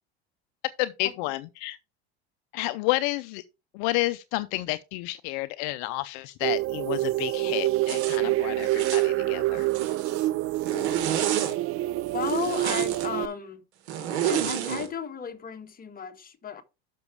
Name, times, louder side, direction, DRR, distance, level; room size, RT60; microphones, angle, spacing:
voice 1, 0.8-1.8 2.5-3.4 3.7-10.0, left 18 dB, 65° left, 0.6 m, -30 dB
sound 1, 6.4-13.3, right 17 dB, 45° right, 0.4 m, -27 dB
Zipper (clothing), 7.8-8.2 8.6-9.1 9.6-10.3 10.6-11.5 12.2-13.1 13.9-14.9, right 9 dB, 85° right, 1.8 m, -30 dB
voice 2, 12.1-13.6 14.2-16.6, left 7 dB, 25° left, 1.5 m, -34 dB
6.8 x 6.1 x 4.7 m
supercardioid pair, 100°, 32 cm